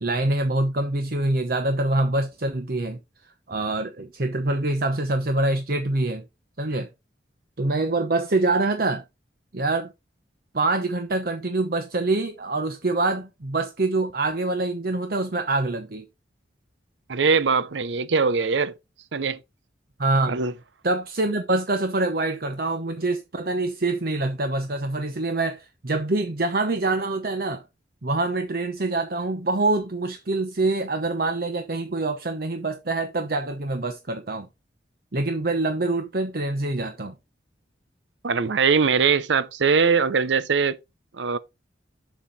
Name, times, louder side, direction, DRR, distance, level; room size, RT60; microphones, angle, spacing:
voice 1, 0.0-3.0 3.5-6.2 6.6-6.9 7.6-9.0 9.5-9.9 10.5-16.0 20.0-20.4 20.8-27.6 28.0-34.5 35.1-37.1, right 2 dB, 55° right, 0.9 m, -25 dB
voice 2, 17.1-18.7 19.1-19.4 20.3-20.5 38.2-40.8 41.1-41.4, right 5 dB, 80° right, 0.6 m, -21 dB
7.2 x 7.1 x 4.0 m
head